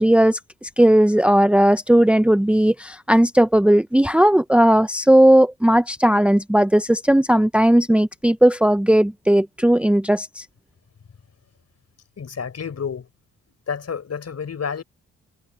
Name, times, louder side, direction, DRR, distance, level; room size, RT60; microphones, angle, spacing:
voice 1, 0.0-10.4, right 1 dB, 5° right, 0.9 m, -16 dB
voice 2, 12.2-13.0 13.7-14.8, left 6 dB, 50° left, 6.5 m, -29 dB
supercardioid pair, 55°, 32 cm